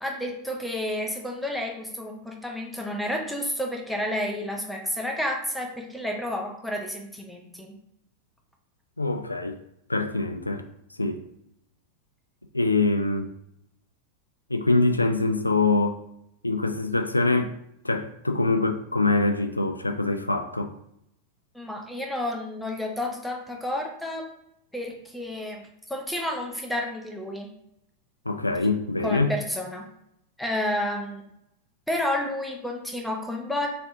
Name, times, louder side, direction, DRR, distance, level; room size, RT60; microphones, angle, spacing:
voice 1, 0.0-7.7 21.5-24.3 24.7-27.5 29.0-29.9 30.4-31.2 31.9-33.7, left 1 dB, 5° left, 1 dB, 0.7 m, -30 dB
voice 2, 9.0-9.6 9.9-10.6 11.0-11.2 12.5-13.3 14.5-16.0 16.4-17.5 17.8-20.7 28.3-29.3, left 3 dB, 85° left, 7 dB, 0.3 m, -24 dB
3.4 x 3.2 x 2.6 m, 0.77 s
figure-of-eight pair, 90°, 0 cm